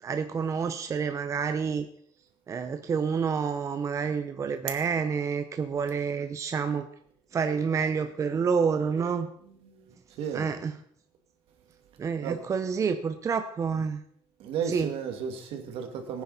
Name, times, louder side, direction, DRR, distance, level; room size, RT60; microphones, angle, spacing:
voice 1, 0.0-1.9 2.5-6.9 7.3-9.3 10.3-10.8 12.0-14.0 14.7-14.9, right 6 dB, 30° right, 0.7 m, -28 dB
voice 2, 9.4-10.5 12.2-12.4 14.4-16.2, right 7 dB, 75° right, 2.3 m, -34 dB
18.0 x 9.7 x 4.2 m
cardioid pair, 130°, 10 cm